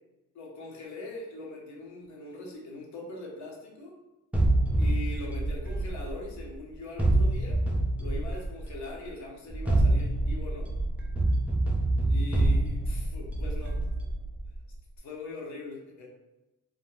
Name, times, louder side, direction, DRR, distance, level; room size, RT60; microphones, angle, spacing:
voice 1, 0.3-4.0 4.8-7.6 8.0-10.7 12.1-13.8 15.0-16.1, left 2 dB, 70° left, -2 dB, 0.8 m, -41 dB
sound 1, 4.3-6.5 7.0-8.8 9.5-14.6, right 2 dB, 5° right, 0.5 m, -26 dB
2.2 x 2.1 x 3.0 m, 1.0 s
cardioid pair, 90°, 30 cm